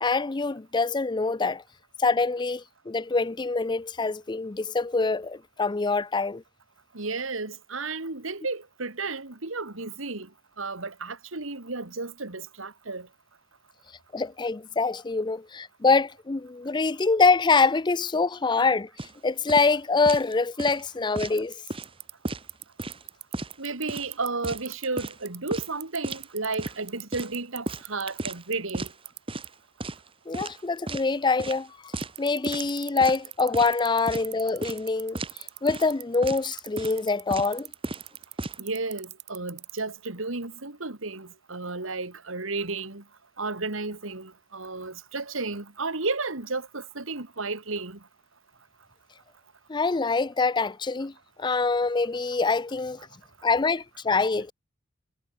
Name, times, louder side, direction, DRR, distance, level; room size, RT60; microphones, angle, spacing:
voice 1, 0.0-1.6 2.0-6.4 14.1-21.6 30.3-31.9 32.2-37.7 49.7-51.1 51.4-53.0 53.4-54.5, left 4 dB, 20° left, 0.5 m, -25 dB
voice 2, 6.9-10.3 10.6-13.1 23.6-28.9 38.6-43.0 43.4-48.0, right 3 dB, 70° right, 2.4 m, -33 dB
sound 1, 19.0-19.1 19.5-19.7 20.0-20.3 20.6-21.4 21.7-21.9 22.2-23.0 23.3-23.5 23.9-25.2 25.5-25.7 26.0-26.2 26.6-26.8 27.1-28.4 28.7-28.9 29.3-29.5 29.8-30.1 30.3-31.1 31.4-31.6 31.9-32.2 32.5-32.7 33.0-33.7 34.1-34.3 34.6-34.9 35.1-35.4 35.7-35.9 36.2-36.4 36.8-37.0 37.3-37.5 37.8-38.6, right 2 dB, 25° right, 1.3 m, -34 dB
sound 2, 21.4-29.2 29.4-29.5 32.0-39.8, right 17 dB, 55° right, 3.8 m, -39 dB
head